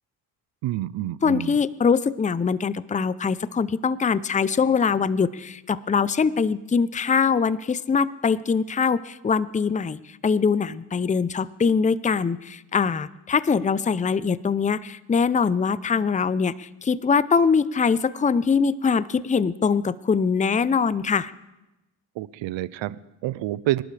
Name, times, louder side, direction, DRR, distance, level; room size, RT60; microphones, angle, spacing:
voice 1, 0.6-1.6 22.2-23.8, right 15 dB, 70° right, 18 dB, 0.7 m, -28 dB
voice 2, 1.2-21.3, left 5 dB, 15° left, 17 dB, 0.6 m, -23 dB
24.5 x 12.0 x 3.4 m, 0.97 s
supercardioid pair, 70°, 47 cm